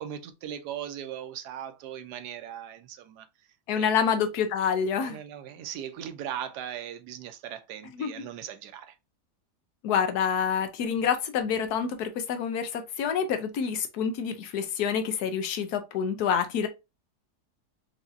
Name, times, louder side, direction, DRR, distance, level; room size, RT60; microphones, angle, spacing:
voice 1, 0.0-3.3 3.7-3.9 5.0-9.0, right 10 dB, 85° right, 1.2 m, -39 dB
voice 2, 3.7-5.2 8.0-8.1 9.8-16.7, left 7 dB, 75° left, 1.2 m, -27 dB
4.7 x 2.8 x 2.5 m
omnidirectional pair, 1.7 m